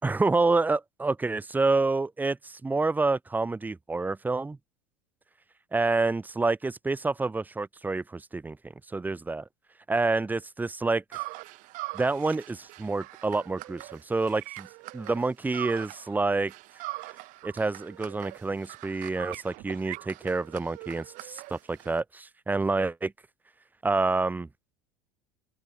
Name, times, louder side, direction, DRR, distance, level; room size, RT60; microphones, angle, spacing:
voice 1, 0.0-4.6 5.7-8.6 8.9-9.4 9.9-11.0 11.9-14.7 14.9-16.5 17.4-23.1 23.8-24.5, right 3 dB, 10° right, 0.9 m, -28 dB
sound 1, 11.1-16.2 16.5-22.0, right 22 dB, 60° right, 2.1 m, -42 dB
open air
supercardioid pair, 105°, 15 cm